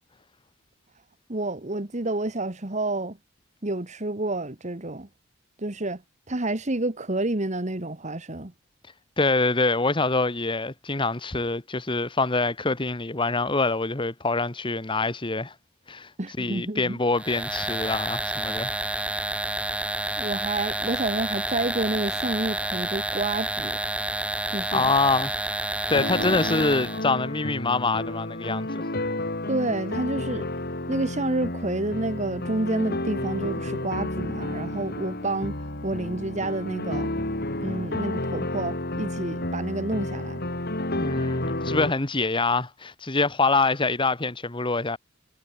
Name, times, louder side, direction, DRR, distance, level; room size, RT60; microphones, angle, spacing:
voice 1, 1.3-3.2 3.6-5.1 5.6-6.0 6.3-8.5 16.2-17.0 20.2-23.8 24.5-24.9 29.5-30.5 30.9-37.1 37.6-40.4, right 2 dB, 35° right, 1.5 m, -29 dB
voice 2, 9.2-15.5 15.9-16.1 16.4-18.7 24.7-25.4 25.9-28.9 41.0-45.0, left 3 dB, 25° left, 1.3 m, -25 dB
sound 1, 17.2-27.0, right 1 dB, 5° right, 2.1 m, -29 dB
sound 2, 25.9-41.9, left 1 dB, 50° left, 3.4 m, -31 dB
head